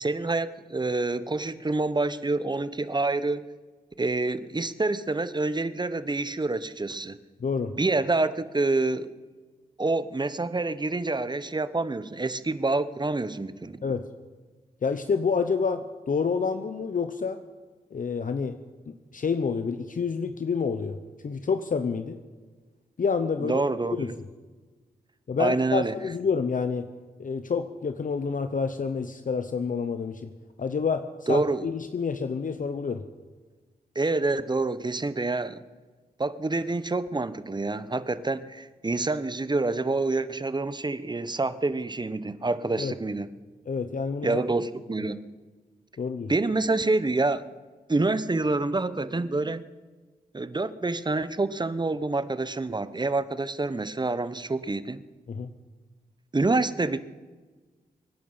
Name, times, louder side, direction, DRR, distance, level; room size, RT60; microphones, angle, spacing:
voice 1, 0.0-3.5 4.0-7.2 7.7-9.1 9.8-13.8 23.4-24.2 25.4-25.9 31.3-31.7 33.9-35.6 36.2-43.3 44.2-45.2 46.3-47.4 47.9-49.6 50.3-55.0 56.3-57.0, right 3 dB, 25° right, 14 dB, 1.0 m, -27 dB
voice 2, 7.4-7.7 13.8-14.1 14.8-17.4 17.9-18.6 18.9-21.0 21.2-22.2 23.0-23.6 23.9-24.1 25.3-26.9 27.2-30.3 30.6-33.0 42.8-42.9 43.7-44.4 46.0-46.3 55.3-55.5, left 5 dB, 55° left, 9 dB, 0.9 m, -28 dB
24.5 x 10.0 x 5.7 m, 1.4 s
cardioid pair, 55°, 17 cm